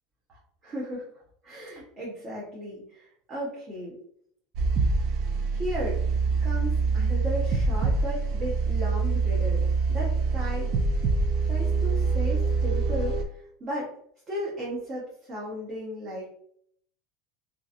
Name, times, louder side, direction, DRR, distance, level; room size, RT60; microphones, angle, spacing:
voice 1, 0.3-1.1 1.4-4.0 5.5-6.0 6.4-9.6 9.9-10.7 11.4-13.9 14.3-16.3, equal, 30° right, -6 dB, 0.9 m, -35 dB
sound 1, 4.5-13.2, right 4 dB, 50° right, 0.4 m, -25 dB
2.9 x 2.6 x 2.4 m, 0.65 s
supercardioid pair, 150°, 0 cm